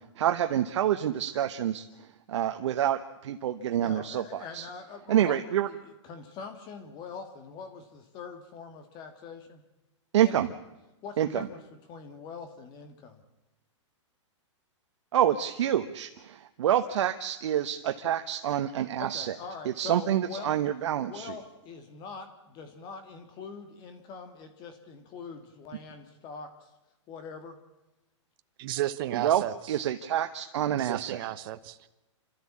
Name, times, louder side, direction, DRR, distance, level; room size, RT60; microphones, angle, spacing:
voice 1, 0.2-4.2 4.5-4.7 5.1-5.7 10.1-10.5 11.2-11.5 15.1-19.3 19.6-21.3 29.1-29.4 29.7-31.2, right 11 dB, 65° right, 7 dB, 1.1 m, -27 dB
voice 2, 3.8-5.4 5.6-5.8 6.0-9.6 10.2-10.4 11.0-11.6 11.9-13.2 19.0-20.6 21.0-26.7 27.1-27.6, left 5 dB, 25° left, 8 dB, 1.7 m, -43 dB
voice 3, 28.6-29.8 30.7-31.9, right 14 dB, 45° right, 11 dB, 1.1 m, -34 dB
28.5 x 13.0 x 8.6 m, 1.0 s
hypercardioid pair, 150°, 16 cm